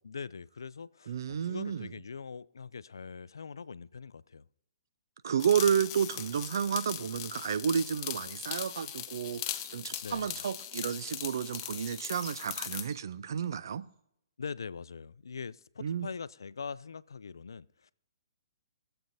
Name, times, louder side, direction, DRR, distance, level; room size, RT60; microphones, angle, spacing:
voice 1, 0.0-4.5 10.0-10.4 14.4-17.9, left 5 dB, 75° left, 0.4 m, -42 dB
voice 2, 1.1-1.9 5.2-13.8 15.8-16.1, right 7 dB, 65° right, 0.5 m, -31 dB
sound 1, 5.4-12.9, left 13 dB, 35° left, 0.6 m, -40 dB
sound 2, 9.3-13.0, right 3 dB, 45° right, 2.0 m, -52 dB
22.5 x 7.7 x 2.7 m
figure-of-eight pair, 125°, 2 cm